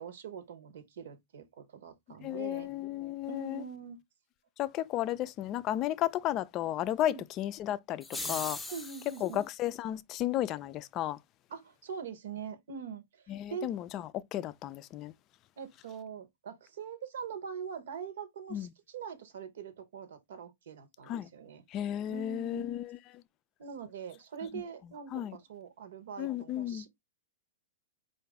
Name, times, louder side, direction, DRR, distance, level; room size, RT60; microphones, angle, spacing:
voice 1, 0.0-2.7 3.3-4.0 7.1-7.2 8.7-9.4 11.5-13.7 15.6-21.6 22.1-22.7 23.6-26.9, right 7 dB, 70° right, 1.0 m, -43 dB
voice 2, 2.2-3.6 4.6-8.6 9.2-11.2 13.3-15.1 18.5-18.7 21.1-21.3 21.7-23.0 25.1-25.4 26.2-26.9, left 12 dB, 35° left, 0.4 m, -33 dB
sound 1, 8.0-9.3, left 2 dB, 5° left, 0.7 m, -39 dB
4.6 x 2.6 x 3.5 m
hypercardioid pair, 115°, 0 cm